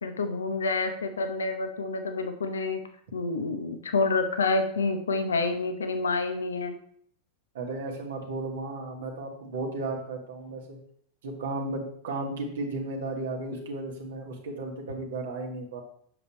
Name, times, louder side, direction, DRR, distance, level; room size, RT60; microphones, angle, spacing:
voice 1, 0.0-2.8 3.1-6.8, left 3 dB, 70° left, 8 dB, 0.8 m, -28 dB
voice 2, 7.5-10.8 11.2-15.8, right 2 dB, 60° right, 1 dB, 1.7 m, -34 dB
7.8 x 6.9 x 3.1 m, 0.62 s
figure-of-eight pair, 90°, 0 cm